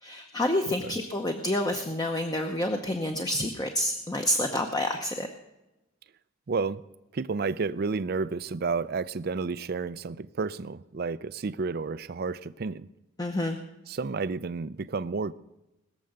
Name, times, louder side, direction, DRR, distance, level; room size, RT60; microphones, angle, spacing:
voice 1, 0.0-5.3 13.2-13.6, left 1 dB, 20° left, 0.8 m, -28 dB
voice 2, 6.5-6.8 7.1-12.9 13.9-15.3, right 4 dB, 45° right, 0.4 m, -31 dB
20.5 x 7.0 x 6.6 m
head